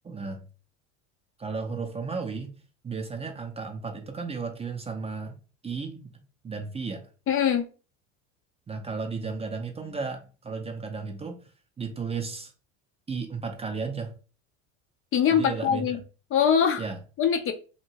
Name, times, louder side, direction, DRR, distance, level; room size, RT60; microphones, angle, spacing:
voice 1, 0.0-0.4 1.4-2.5 2.8-5.4 5.6-6.1 6.4-7.0 8.7-11.4 11.8-12.5 13.1-14.1 15.3-16.0 16.8-17.0, right 4 dB, 15° right, 0.5 m, -34 dB
voice 2, 7.3-7.6 15.1-16.0 16.3-16.8 17.2-17.5, left 8 dB, 35° left, 0.5 m, -22 dB
2.9 x 2.5 x 2.8 m
supercardioid pair, 100°, 37 cm